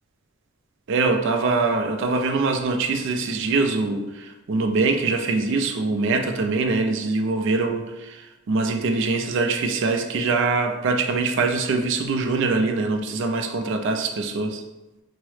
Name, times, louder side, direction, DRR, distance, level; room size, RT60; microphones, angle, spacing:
voice 1, 0.9-14.6, right 3 dB, 60° right, 4 dB, 0.4 m, -23 dB
4.6 x 2.0 x 3.1 m, 1.0 s
head